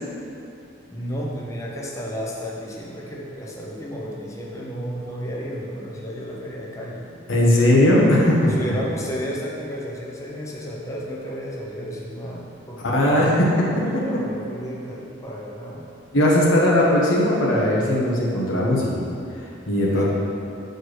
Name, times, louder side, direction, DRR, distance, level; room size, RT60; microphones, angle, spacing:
voice 1, 0.9-7.1 8.5-13.4 14.0-15.9 19.9-20.0, equal, 15° left, -3 dB, 0.7 m, -33 dB
voice 2, 7.3-8.5 12.8-13.7 16.1-19.0 19.7-20.0, left 1 dB, 80° left, -5 dB, 1.1 m, -18 dB
7.9 x 4.5 x 3.2 m, 2.6 s
head